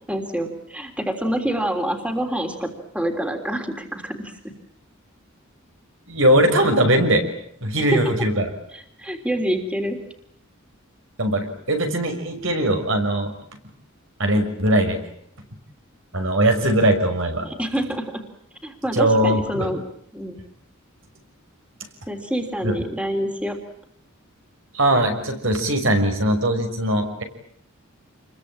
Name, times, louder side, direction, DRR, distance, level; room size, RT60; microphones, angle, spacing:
voice 1, 0.1-4.4 7.9-8.0 8.7-10.0 17.4-18.2 18.6-19.8 20.1-20.4 22.1-23.6, equal, 5° right, 5 dB, 3.4 m, -26 dB
voice 2, 6.1-7.2 7.6-8.5 11.2-13.3 14.2-15.0 16.1-17.5 18.9-19.7 22.6-22.7 24.7-27.2, right 1 dB, 65° right, 5 dB, 6.2 m, -20 dB
28.5 x 22.5 x 8.9 m, 0.69 s
head